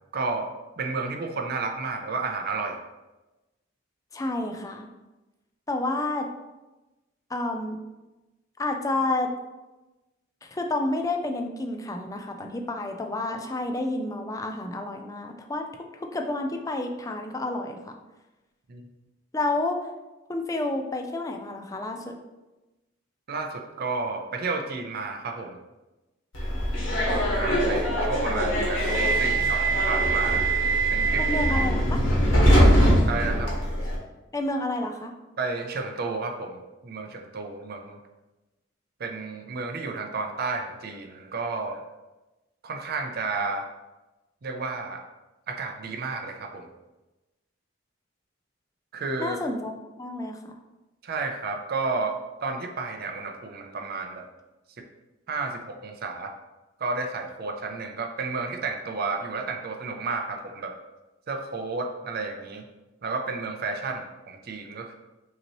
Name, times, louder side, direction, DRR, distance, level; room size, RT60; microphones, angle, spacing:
voice 1, 0.1-0.5 0.8-2.8 18.7-18.9 23.3-25.6 27.3-30.5 30.9-31.3 33.1-33.5 35.4-38.0 39.0-41.8 42.6-43.7 44.4-45.0 45.5-46.7 48.9-49.4 51.0-52.1 52.4-54.3 55.3-56.3 56.8-60.7 61.3-62.6 63.0-64.9, right 4 dB, 50° right, 4 dB, 0.5 m, -31 dB
voice 2, 4.1-4.9 5.7-6.3 7.3-7.8 8.6-9.3 10.4-15.7 15.9-17.9 19.3-19.9 20.3-22.2 31.2-32.0 34.3-35.1 49.2-50.6, left 2 dB, 15° left, 4 dB, 0.4 m, -30 dB
Subway metro underground, 26.3-34.0, right 1 dB, 80° left, 1.3 m, -22 dB
5.3 x 2.9 x 3.0 m, 1.1 s
head